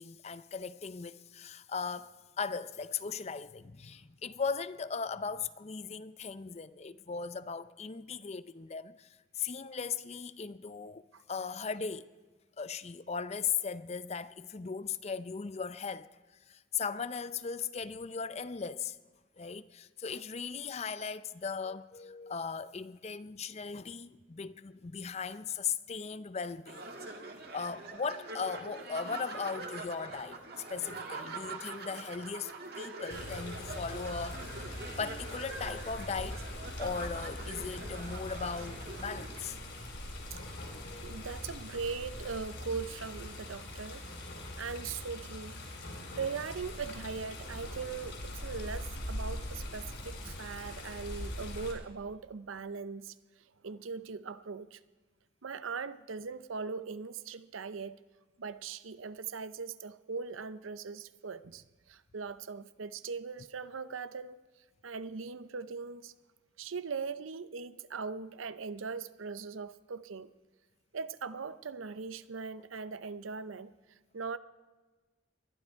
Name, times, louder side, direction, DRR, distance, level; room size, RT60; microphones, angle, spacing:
voice 1, 0.0-11.0 11.3-12.1 12.6-16.1 16.5-19.0 19.4-26.8 27.5-34.5 35.0-36.4 36.8-39.6 40.7-41.2 50.2-50.3, left 5 dB, 35° left, 0.5 m, -38 dB
sound 1, 26.7-39.4, right 3 dB, 50° right, 1.7 m, -44 dB
Water, 33.1-51.7, left 1 dB, 65° left, 4.0 m, -42 dB
voice 2, 41.0-44.0 44.6-45.6 46.2-54.8 55.4-58.0 58.4-64.4 64.8-66.1 66.6-70.3 70.9-74.4, right 5 dB, 85° right, 0.6 m, -40 dB
21.0 x 12.0 x 4.6 m
head